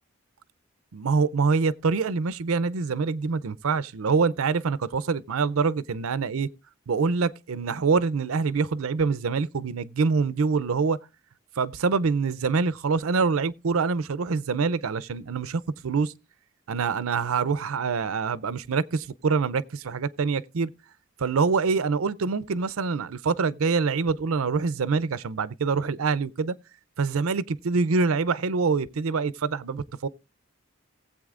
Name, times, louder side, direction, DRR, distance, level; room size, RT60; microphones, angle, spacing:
voice 1, 0.9-6.5 6.9-11.0 11.6-16.1 16.7-20.7 21.2-26.5 27.0-30.1, right 4 dB, 85° right, 0.5 m, -25 dB
19.0 x 7.9 x 2.4 m
head